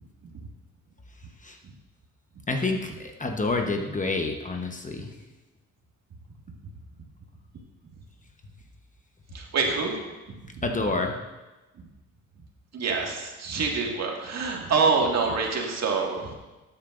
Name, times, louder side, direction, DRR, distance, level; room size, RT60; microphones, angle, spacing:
voice 1, 2.5-5.1 10.6-11.2, left 3 dB, 25° left, 4 dB, 1.0 m, -28 dB
voice 2, 9.3-9.9 10.6-10.7 12.7-16.3, right 4 dB, 60° right, 0 dB, 1.9 m, -26 dB
12.5 x 8.6 x 2.5 m, 1.1 s
cardioid pair, 90°, 30 cm